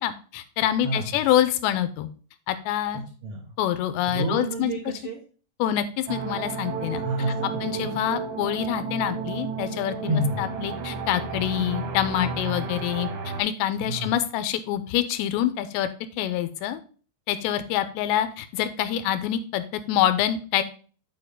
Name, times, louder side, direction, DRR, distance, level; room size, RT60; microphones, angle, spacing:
voice 1, 0.0-2.1 2.5-3.0 3.6-4.7 5.6-7.0 7.6-15.9 16.2-16.8 17.3-20.6, left 11 dB, 85° left, 12 dB, 2.8 m, -26 dB
voice 2, 3.2-3.5 4.1-5.2 7.0-7.9 10.1-10.4 13.8-14.1, right 1 dB, 80° right, -1 dB, 1.3 m, -29 dB
sound 1, 6.1-13.4, right 5 dB, 60° right, 2.5 m, -32 dB
10.0 x 4.9 x 3.7 m, 0.39 s
omnidirectional pair, 5.2 m